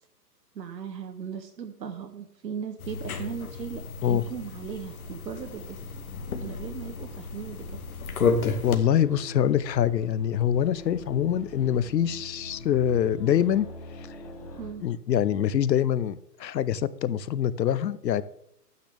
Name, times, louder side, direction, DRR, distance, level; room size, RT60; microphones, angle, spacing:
voice 1, 0.5-5.8 6.4-7.8 14.6-14.8, right 7 dB, 80° right, 5 dB, 1.2 m, -37 dB
sound 1, 2.8-8.8, left 4 dB, 60° left, 1.3 m, -32 dB
voice 2, 8.6-13.7 14.8-18.2, left 10 dB, 80° left, 17 dB, 0.7 m, -24 dB
sound 2, 8.9-14.7, equal, 20° left, 1.1 m, -42 dB
10.5 x 9.1 x 3.4 m, 0.73 s
hypercardioid pair, 180°, 50 cm